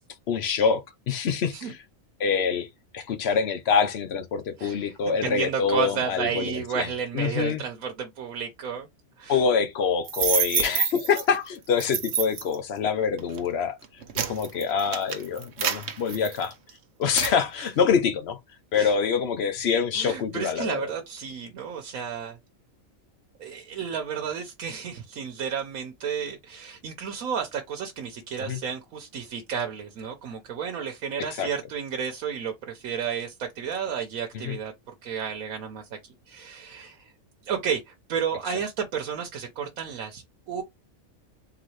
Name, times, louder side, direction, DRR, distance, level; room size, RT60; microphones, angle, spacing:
voice 1, 0.3-1.8 2.2-2.7 2.9-6.9 7.1-7.6 9.3-13.8 14.1-16.5 17.0-18.4 18.7-20.9 28.4-28.6 31.2-31.5 34.3-34.6, left 6 dB, 55° left, 0.9 m, -25 dB
voice 2, 4.6-8.9 9.2-9.4 17.1-17.3 18.8-18.9 19.9-22.4 23.4-34.7 35.0-35.9 36.3-37.1 37.5-40.6, right 7 dB, 90° right, 1.2 m, -32 dB
sound 1, 10.0-11.2 11.8-12.5 13.2-13.4 13.8-16.7 17.2-17.4, right 7 dB, 55° right, 1.0 m, -27 dB
3.9 x 3.5 x 3.1 m
omnidirectional pair, 1.4 m